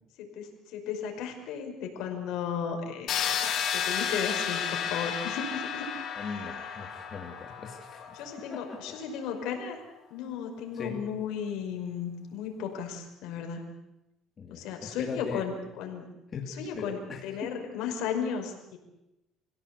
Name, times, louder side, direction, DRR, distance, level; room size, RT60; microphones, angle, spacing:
voice 1, 0.2-5.9 6.2-6.3 8.1-9.8 10.1-13.7 14.5-16.1 16.4-18.8, left 7 dB, 80° left, 3 dB, 5.4 m, -35 dB
sound 1, 3.1-8.9, left 8 dB, 55° left, 3.7 m, -32 dB
voice 2, 6.2-9.0 10.7-11.0 14.4-15.4 16.3-17.7, left 5 dB, 35° left, 1 dB, 2.8 m, -40 dB
27.5 x 16.5 x 8.4 m, 0.92 s
cardioid pair, 130°, 0 cm